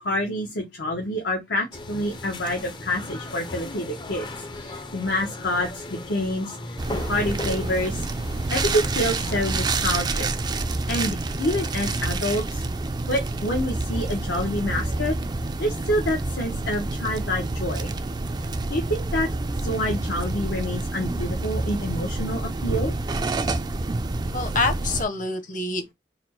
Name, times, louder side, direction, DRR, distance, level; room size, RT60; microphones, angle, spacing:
voice 1, 0.0-6.8 7.1-8.0 8.5-10.3 10.9-12.6 13.1-15.2 15.6-17.9 18.7-19.3 19.6-22.9, left 1 dB, 75° left, 0.9 m, -27 dB
sound 1, 1.7-9.7, left 2 dB, 25° left, 0.5 m, -37 dB
sound 2, 6.8-25.0, right 2 dB, 25° right, 0.4 m, -28 dB
sound 3, 13.3-19.5, left 1 dB, 75° right, 1.0 m, -44 dB
voice 2, 24.3-25.9, left 3 dB, 50° left, 0.9 m, -26 dB
4.1 x 2.1 x 4.3 m
head